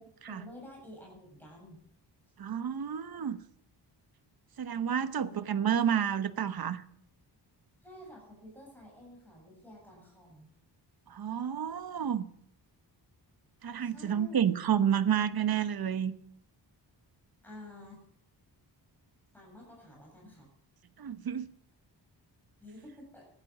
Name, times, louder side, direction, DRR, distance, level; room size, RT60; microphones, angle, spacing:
voice 1, 0.3-1.8 5.1-5.5 7.8-10.5 13.8-14.5 17.4-18.1 19.3-20.5 22.6-23.3, left 1 dB, 5° left, 7.4 m, -50 dB
voice 2, 2.4-3.4 4.6-6.8 11.1-12.3 13.6-16.1 21.0-21.5, right 8 dB, 55° right, 1.0 m, -30 dB
14.0 x 11.5 x 7.4 m
wide cardioid pair, 130°, 43 cm